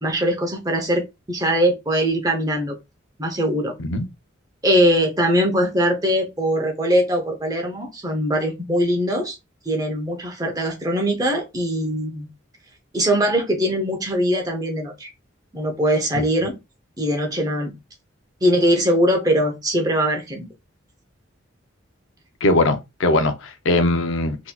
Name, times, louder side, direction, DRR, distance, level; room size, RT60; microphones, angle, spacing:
voice 1, 0.0-2.8 3.2-3.7 4.6-9.4 9.7-12.3 12.9-15.1 15.5-16.6 17.0-17.7 18.4-20.5, equal, 20° right, 0.7 m, -21 dB
voice 2, 22.4-24.4, left 2 dB, 75° left, 0.6 m, -20 dB
3.9 x 2.9 x 2.3 m
head